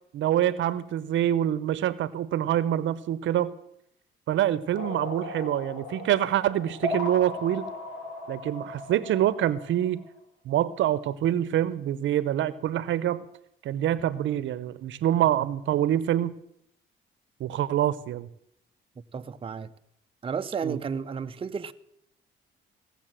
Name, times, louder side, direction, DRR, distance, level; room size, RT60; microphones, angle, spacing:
voice 1, 0.1-3.5 4.3-7.7 8.3-10.0 10.5-13.2 13.6-16.3 17.4-18.3 20.6-20.8, right 11 dB, 75° right, 0.7 m, -26 dB
sound 1, 4.7-10.1, left 2 dB, 90° left, 5.0 m, -37 dB
voice 2, 19.1-19.7 20.2-21.7, right 6 dB, 25° right, 0.6 m, -32 dB
17.0 x 7.3 x 7.4 m
cardioid pair, 90°, 20 cm